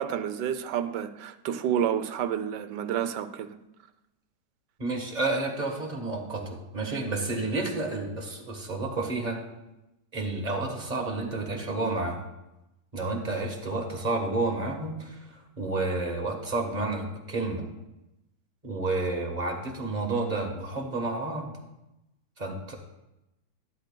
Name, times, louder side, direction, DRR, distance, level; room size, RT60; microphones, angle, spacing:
voice 1, 0.0-3.5, right 9 dB, 85° right, 1.3 m, -29 dB
voice 2, 4.8-9.4 10.1-12.2 12.9-17.7 18.6-21.5 22.4-22.8, right 2 dB, 30° right, 1.3 m, -30 dB
12.5 x 11.5 x 2.2 m
omnidirectional pair, 1.8 m